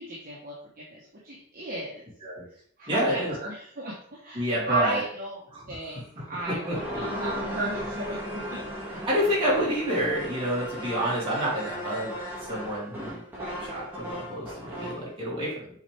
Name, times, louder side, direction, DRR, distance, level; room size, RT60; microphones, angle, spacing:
voice 1, 0.0-2.0 2.8-5.4 5.7-8.6 13.3-13.7, right 2 dB, 40° right, -5 dB, 1.2 m, -35 dB
voice 2, 2.9-3.3 4.3-5.0 5.5-5.8 6.7-7.0 9.1-13.2 13.6-15.8, equal, 25° right, -7 dB, 2.9 m, -28 dB
sound 1, 6.2-15.1, equal, 10° right, 2.0 m, -36 dB
7.1 x 4.3 x 3.5 m, 0.63 s
head